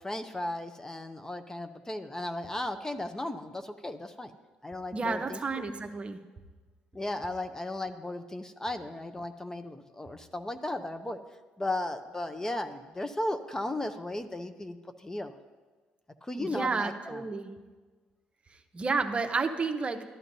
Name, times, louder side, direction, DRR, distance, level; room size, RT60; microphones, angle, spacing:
voice 1, 0.0-4.3 4.6-5.6 6.9-11.2 11.6-15.4 16.2-17.3, left 1 dB, 15° left, 8 dB, 0.6 m, -35 dB
voice 2, 4.9-6.2 16.3-17.6 18.7-20.0, right 4 dB, 35° right, 6 dB, 0.8 m, -31 dB
13.0 x 10.5 x 2.7 m, 1.3 s
supercardioid pair, 70°, 3 cm